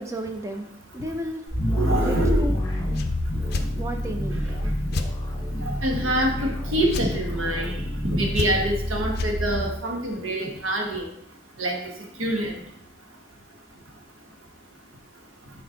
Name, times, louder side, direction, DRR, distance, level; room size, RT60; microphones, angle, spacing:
voice 1, 0.0-1.4 2.0-2.6 3.7-4.4, right 1 dB, 15° right, 5 dB, 0.6 m, -32 dB
sound 1, 1.5-9.6, equal, 20° left, 1.5 m, -27 dB
voice 2, 1.7-2.5 5.6-7.7 8.0-11.0 11.6-11.7 12.2-12.5, right 1 dB, 90° right, 1 dB, 1.4 m, -26 dB
sound 2, 2.9-3.1 3.5-3.7 4.9-5.1 6.9-7.1 8.3-8.8 9.1-9.3, left 3 dB, 50° left, 0.5 m, -29 dB
6.6 x 4.5 x 3.8 m, 0.74 s
head